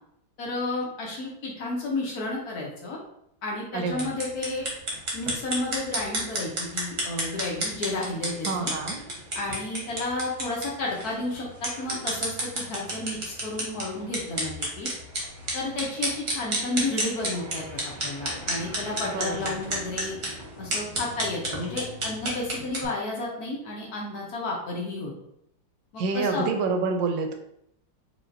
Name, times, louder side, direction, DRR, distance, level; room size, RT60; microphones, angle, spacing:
voice 1, 0.4-3.0 3.4-4.7 5.1-8.7 9.3-14.9 15.5-17.6 18.0-20.2 20.6-25.1 25.9-26.5, left 2 dB, 60° left, -2 dB, 1.3 m, -32 dB
voice 2, 3.7-4.1 8.5-9.0 19.1-19.4 26.0-27.3, right 4 dB, 80° right, 5 dB, 1.4 m, -27 dB
sound 1, 3.9-22.9, right 1 dB, 40° right, 1.0 m, -32 dB
4.8 x 2.8 x 2.6 m, 0.75 s
omnidirectional pair, 2.1 m